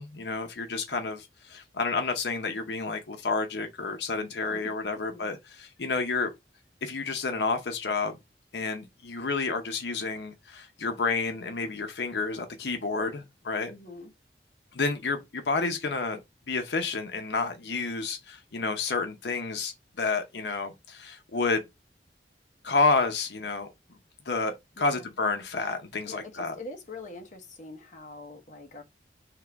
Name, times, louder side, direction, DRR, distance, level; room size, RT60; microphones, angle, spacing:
voice 1, 0.0-6.3 6.8-8.2 8.5-13.7 14.7-16.2 16.5-21.6 22.6-23.7 24.3-26.5, left 4 dB, 80° left, 0.7 m, -30 dB
voice 2, 5.1-5.4 13.7-14.1 24.8-25.1 26.1-28.8, left 2 dB, 45° left, 0.9 m, -44 dB
3.7 x 2.9 x 4.5 m
head